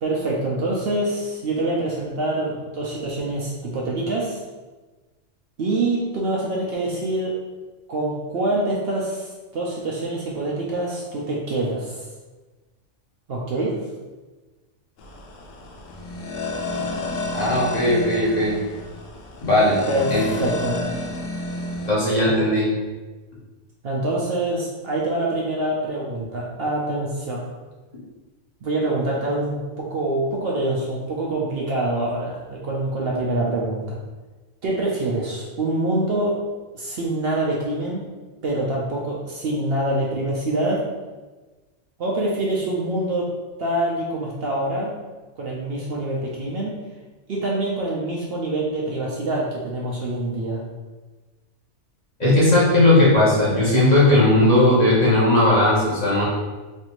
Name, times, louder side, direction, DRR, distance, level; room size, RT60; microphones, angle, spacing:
voice 1, 0.0-4.4 5.6-7.4 7.9-12.1 13.3-13.8 19.9-20.8 23.8-27.4 28.6-34.0 34.6-36.4 36.7-38.1 38.4-40.8 42.0-44.9 45.4-46.8 47.3-50.6, right 2 dB, 60° right, -3 dB, 0.7 m, -25 dB
sound 1, 15.0-21.9, left 2 dB, 85° left, 0.9 m, -30 dB
voice 2, 17.3-18.6 19.4-19.8 20.1-20.2 21.9-22.7 52.2-56.2, left 1 dB, 40° left, -7 dB, 0.9 m, -17 dB
3.2 x 2.6 x 2.9 m, 1.2 s
omnidirectional pair, 1.3 m